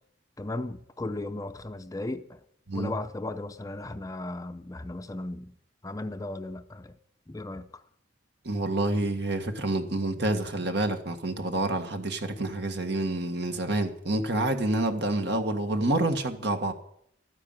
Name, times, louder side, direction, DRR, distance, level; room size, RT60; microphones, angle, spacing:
voice 1, 0.4-2.4 2.7-5.5 5.8-7.0 7.3-7.8, left 2 dB, 20° left, 0.6 m, -36 dB
voice 2, 8.4-16.7, right 2 dB, 65° right, 1.7 m, -28 dB
13.0 x 9.7 x 9.0 m
head